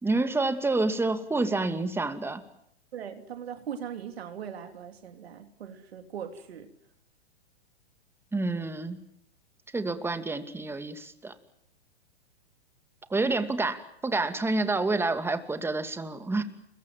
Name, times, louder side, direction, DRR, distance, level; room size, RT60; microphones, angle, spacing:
voice 1, 0.0-2.4 8.3-9.0 9.7-11.3 13.1-16.4, right 3 dB, 5° right, 2.5 m, -28 dB
voice 2, 2.9-6.7, right 8 dB, 70° right, 3.2 m, -40 dB
29.5 x 22.0 x 7.7 m
hypercardioid pair, 115°, 32 cm